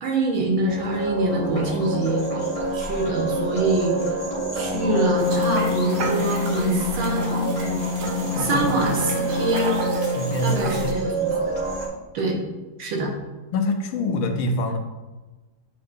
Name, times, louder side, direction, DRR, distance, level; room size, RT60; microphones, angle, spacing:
voice 1, 0.0-2.3 2.7-4.0 4.5-7.4 8.4-9.8 10.4-11.3 12.1-12.4 12.8-13.1, right 2 dB, 80° right, 0 dB, 1.9 m, -25 dB
sound 1, 0.7-11.9, right 2 dB, 20° left, 1.2 m, -28 dB
Wind instrument woodwind instrument, 4.7-10.4, left 2 dB, 55° left, 0.6 m, -27 dB
sound 2, 5.2-10.9, right 4 dB, 60° right, 1.2 m, -35 dB
voice 2, 8.3-8.7 10.0-11.0 13.5-14.8, left 2 dB, 85° left, 5 dB, 1.5 m, -25 dB
8.3 x 4.4 x 2.6 m, 1.2 s
omnidirectional pair, 2.2 m